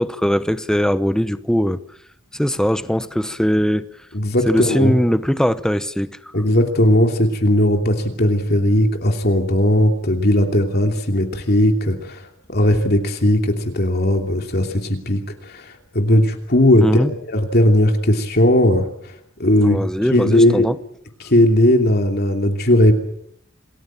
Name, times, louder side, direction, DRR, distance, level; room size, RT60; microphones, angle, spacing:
voice 1, 0.0-1.8 2.3-3.9 4.5-6.1 16.8-17.1 19.6-20.8, equal, 5° left, 12 dB, 0.9 m, -20 dB
voice 2, 4.1-5.0 6.3-12.2 12.5-18.9 19.4-19.8 20.1-20.7 21.2-22.9, left 1 dB, 50° left, 3 dB, 2.9 m, -17 dB
28.0 x 19.0 x 7.6 m, 0.73 s
head